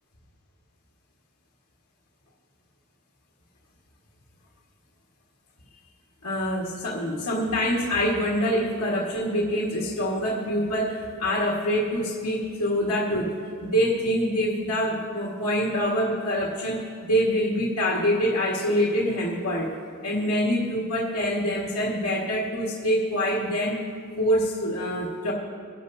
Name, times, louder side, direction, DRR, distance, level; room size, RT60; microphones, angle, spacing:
voice 1, 6.2-19.8 20.0-23.8 24.2-25.3, equal, 90° left, -5 dB, 1.7 m, -25 dB
22.0 x 11.5 x 2.7 m, 2.4 s
head